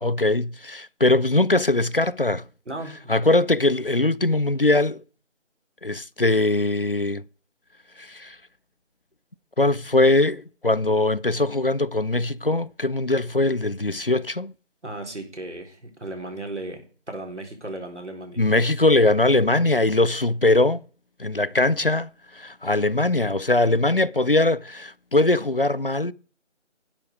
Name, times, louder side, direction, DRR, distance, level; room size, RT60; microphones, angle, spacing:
voice 1, 0.0-2.4 3.1-5.0 5.8-7.2 8.0-8.4 9.6-14.5 18.4-20.8 21.2-26.1, left 2 dB, 50° left, 0.4 m, -21 dB
voice 2, 2.7-3.2 14.8-18.4, right 2 dB, 70° right, 4.2 m, -36 dB
11.5 x 8.8 x 4.7 m
figure-of-eight pair, 170°, 36 cm